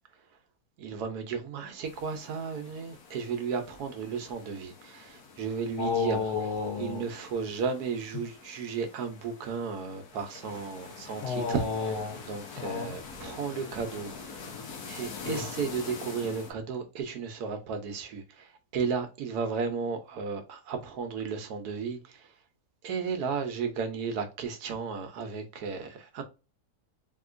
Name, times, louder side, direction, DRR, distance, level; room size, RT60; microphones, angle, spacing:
voice 1, 0.8-6.2 6.8-11.7 12.2-14.5 14.9-22.3 22.8-26.2, right 5 dB, 75° right, 1.2 m, -34 dB
sound 1, 1.8-16.5, left 5 dB, 65° left, 1.3 m, -45 dB
voice 2, 5.8-7.1 11.2-12.2 12.6-12.9 15.2-15.4, left 5 dB, 85° left, 1.4 m, -31 dB
3.6 x 2.8 x 2.5 m
omnidirectional pair, 1.8 m